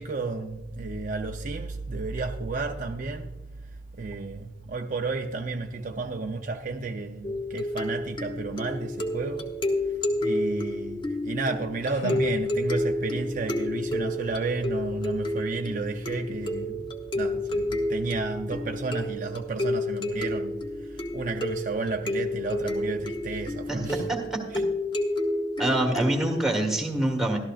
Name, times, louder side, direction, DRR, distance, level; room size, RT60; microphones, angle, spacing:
voice 1, 0.0-3.3 4.0-9.5 10.2-16.9 17.1-24.1 24.5-24.6 25.6-25.8, right 3 dB, 45° right, 0.6 m, -32 dB
sound 1, 7.2-26.4, left 1 dB, 25° left, 1.0 m, -30 dB
sound 2, 11.4-13.1, left 5 dB, 85° left, 0.5 m, -41 dB
voice 2, 23.7-24.4 25.6-27.4, right 1 dB, ahead, 1.6 m, -26 dB
14.0 x 13.0 x 2.4 m
head